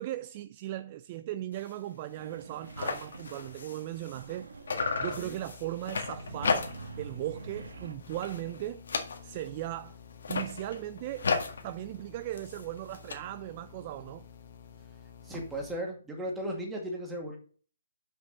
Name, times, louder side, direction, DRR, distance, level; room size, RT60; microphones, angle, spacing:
voice 1, 0.0-4.5 5.0-6.7 7.0-8.8 9.2-10.0 10.3-11.3 11.6-14.3, right 14 dB, 35° right, 0.3 m, -37 dB
sound 1, 1.5-1.8 2.1-2.2 2.4-4.4 4.7-7.0 7.4-7.7 8.0-9.6 10.1-13.1, left 4 dB, 75° left, 1.7 m, -35 dB
sound 2, 2.2-5.4 6.1-7.9, right 3 dB, 85° right, 1.5 m, -46 dB
sound 3, 4.7-15.8, left 7 dB, 50° left, 1.4 m, -52 dB
voice 2, 15.2-17.4, right 1 dB, 5° right, 2.1 m, -36 dB
6.1 x 5.3 x 6.2 m
hypercardioid pair, 155°, 0 cm